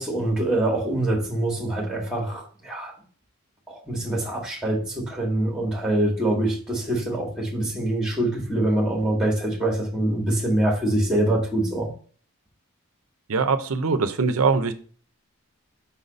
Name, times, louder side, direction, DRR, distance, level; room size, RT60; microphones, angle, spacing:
voice 1, 0.0-2.9 3.7-11.9, right 1 dB, 5° right, 1.9 m, -24 dB
voice 2, 13.3-14.7, right 4 dB, 80° right, 0.6 m, -22 dB
5.7 x 4.0 x 5.2 m
head